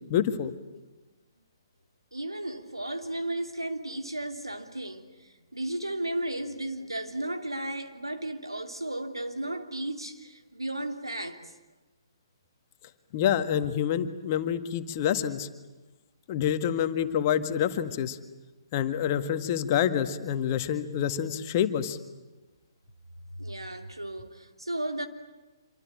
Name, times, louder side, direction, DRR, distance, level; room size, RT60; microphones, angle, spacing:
voice 1, 0.1-0.5 13.1-15.5 16.3-18.2 18.7-22.0, left 9 dB, 35° left, 1.8 m, -27 dB
voice 2, 2.1-11.4 23.4-25.1, right 1 dB, 90° right, 3.0 m, -34 dB
26.5 x 24.5 x 8.8 m
figure-of-eight pair, 130°, 2 cm